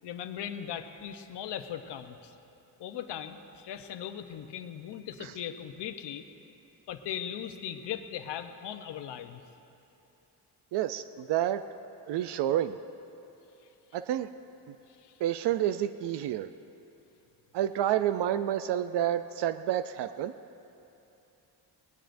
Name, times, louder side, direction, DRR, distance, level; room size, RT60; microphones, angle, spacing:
voice 1, 0.0-2.3 2.8-6.3 6.9-9.4 14.9-15.2, left 9 dB, 85° left, 8 dB, 0.9 m, -39 dB
voice 2, 10.7-11.6 12.1-12.8 13.9-14.3 14.7-14.8 15.2-16.5 17.5-20.3, right 11 dB, 80° right, 11 dB, 0.5 m, -29 dB
21.5 x 19.0 x 2.6 m, 2.9 s
cardioid pair, 155°, 40 cm